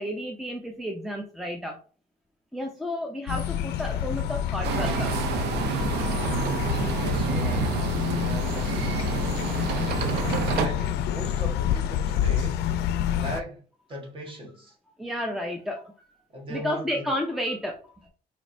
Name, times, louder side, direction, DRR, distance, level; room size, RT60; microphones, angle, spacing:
voice 1, 0.0-1.8 2.5-5.1 15.0-16.2 16.5-18.1, equal, ahead, 0.5 m, -32 dB
sound 1, 3.3-13.4, left 10 dB, 75° left, 0.4 m, -28 dB
sound 2, 4.6-10.7, right 8 dB, 80° right, 0.5 m, -29 dB
voice 2, 6.9-7.8 8.2-8.8 10.3-12.7 13.1-13.6 13.9-14.8 16.3-17.1, right 1 dB, 30° right, 1.4 m, -38 dB
4.3 x 3.0 x 2.6 m
cardioid pair, 110°, 17 cm